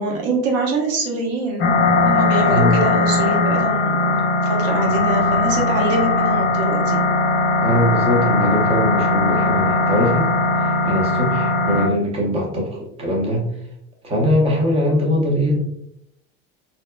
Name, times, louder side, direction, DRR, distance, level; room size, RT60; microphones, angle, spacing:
voice 1, 0.0-1.7 2.0-4.1 4.4-7.0, right 2 dB, 75° right, 0 dB, 0.8 m, -24 dB
sound 1, 1.6-11.9, left 2 dB, 40° left, 0.4 m, -19 dB
voice 2, 2.5-2.8 7.6-10.3 10.8-13.4 14.0-15.6, equal, 20° right, -1 dB, 0.7 m, -21 dB
2.7 x 2.1 x 2.2 m, 0.74 s
supercardioid pair, 110°, 29 cm